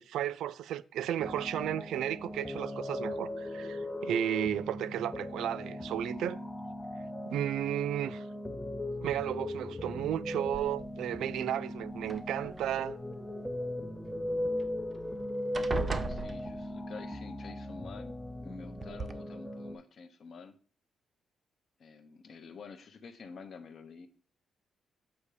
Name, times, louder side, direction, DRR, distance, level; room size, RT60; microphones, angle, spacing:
voice 1, 0.0-6.4 7.3-8.2 9.0-13.0, right 11 dB, 85° right, 0.3 m, -33 dB
sound 1, 1.2-19.7, left 1 dB, 10° left, 0.6 m, -38 dB
sound 2, 10.5-11.1 12.0-12.8 14.6-14.7 15.0-15.2 15.5-17.0 18.1-18.2 18.8-19.1, right 4 dB, 30° right, 0.6 m, -37 dB
voice 2, 15.6-18.2 18.4-20.6 21.8-24.1, left 5 dB, 50° left, 0.9 m, -49 dB
8.0 x 2.8 x 4.9 m
cardioid pair, 100°, 0 cm